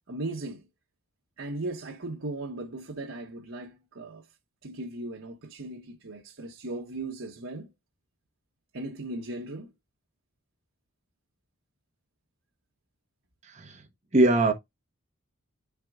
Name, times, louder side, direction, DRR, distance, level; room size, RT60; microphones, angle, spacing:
voice 1, 0.1-0.6 1.4-4.2 4.6-7.7 8.7-9.7, right 2 dB, 75° right, 1.1 m, -37 dB
voice 2, 13.4-13.8 14.1-14.5, right 2 dB, 35° right, 1.1 m, -22 dB
12.0 x 4.7 x 2.3 m
head